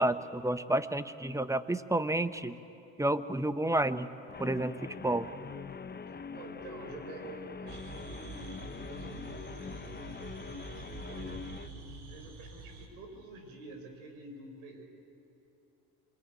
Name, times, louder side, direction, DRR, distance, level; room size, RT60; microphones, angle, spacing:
voice 1, 0.0-2.6 3.0-4.1 4.4-5.3, right 1 dB, 10° right, 12 dB, 1.1 m, -30 dB
Guitar, 4.3-11.7, left 5 dB, 25° left, 1.1 m, -44 dB
voice 2, 6.1-14.9, right 2 dB, 85° right, 5 dB, 4.9 m, -49 dB
sound 1, 7.7-12.9, right 3 dB, 70° right, 4.7 m, -46 dB
26.5 x 23.0 x 9.1 m, 2.9 s
supercardioid pair, 80°, 40 cm